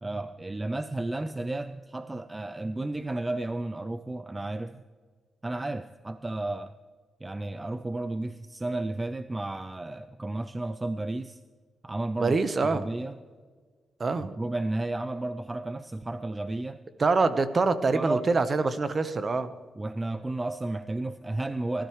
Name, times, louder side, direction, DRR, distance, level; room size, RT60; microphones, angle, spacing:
voice 1, 0.0-4.8 5.4-6.7 7.2-11.4 11.8-12.4 12.6-13.2 14.4-16.8 17.9-18.3 19.8-21.9, right 2 dB, 20° right, 11 dB, 0.5 m, -32 dB
voice 2, 12.2-12.8 14.0-14.3 17.0-19.5, right 3 dB, 40° right, 11 dB, 1.0 m, -25 dB
20.0 x 13.0 x 3.1 m, 1.5 s
cardioid pair, 95°, 0 cm